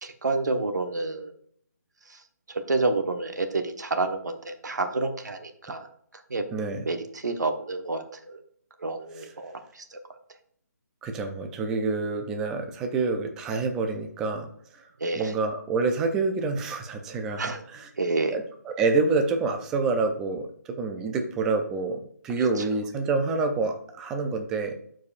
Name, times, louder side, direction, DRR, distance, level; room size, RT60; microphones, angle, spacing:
voice 1, 0.0-1.3 2.1-2.2 2.5-5.9 6.3-6.5 6.8-8.4 8.8-10.0 15.0-15.3 17.4-17.6 18.0-18.4 22.4-22.6, right 3 dB, 80° right, 6 dB, 1.2 m, -29 dB
voice 2, 6.5-6.9 11.0-14.5 14.7-14.9 15.2-17.9 18.3-24.8, right 4 dB, 5° right, 4 dB, 0.3 m, -27 dB
12.0 x 4.7 x 2.5 m, 0.64 s
hypercardioid pair, 165°, 9 cm